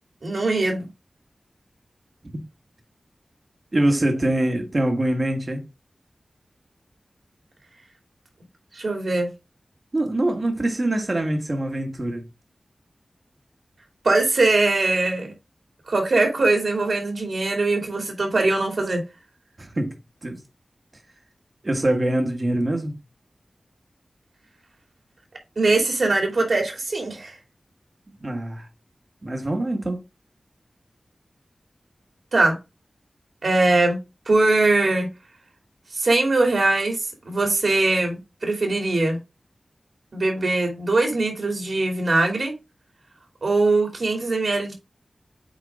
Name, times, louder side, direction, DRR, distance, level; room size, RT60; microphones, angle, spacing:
voice 1, 0.2-0.9 8.7-9.3 14.0-15.3 15.9-19.0 25.6-27.4 32.3-32.6 33.4-34.0 34.3-35.1 35.9-39.2 40.1-42.5 43.4-44.7, right 2 dB, 70° right, 2.8 m, -21 dB
voice 2, 3.7-5.7 9.9-12.3 19.6-19.9 20.2-20.4 21.6-23.0 28.2-28.7 29.2-30.0, right 1 dB, 40° right, 1.6 m, -24 dB
8.3 x 4.4 x 3.6 m
wide cardioid pair, 95°, 0 cm